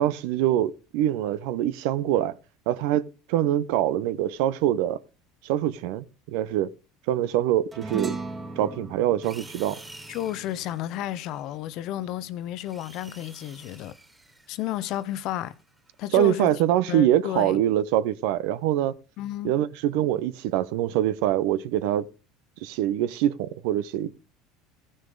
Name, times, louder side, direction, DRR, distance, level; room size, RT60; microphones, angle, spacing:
voice 1, 0.0-2.3 2.7-3.0 3.3-5.0 5.4-6.7 7.1-8.2 8.6-9.8 16.1-18.9 19.4-22.1 22.6-24.1, right 12 dB, 65° right, 0.6 m, -24 dB
sound 1, 7.7-12.4, right 3 dB, 30° right, 2.5 m, -38 dB
sound 2, 9.2-11.7 12.4-16.1, right 2 dB, 10° right, 2.6 m, -50 dB
voice 2, 10.1-13.9 14.5-15.5 16.0-16.5 16.9-17.6 19.2-19.5, left 12 dB, 60° left, 0.7 m, -32 dB
16.0 x 6.3 x 3.8 m
hypercardioid pair, 75°, 0 cm